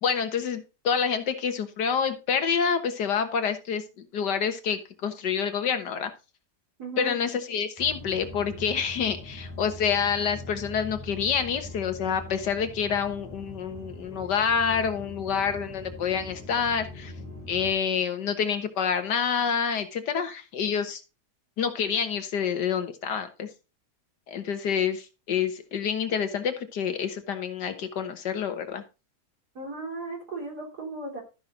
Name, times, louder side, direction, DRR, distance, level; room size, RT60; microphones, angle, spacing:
voice 1, 0.0-6.1 7.0-17.1 17.5-21.0 21.6-23.5 24.3-28.8, left 7 dB, 85° left, 9 dB, 1.9 m, -27 dB
voice 2, 6.8-7.2 29.6-31.2, right 2 dB, 65° right, 1 dB, 3.9 m, -36 dB
sound 1, 7.8-17.7, left 1 dB, 10° right, 2.9 m, -42 dB
13.0 x 6.0 x 3.8 m, 0.30 s
omnidirectional pair, 1.8 m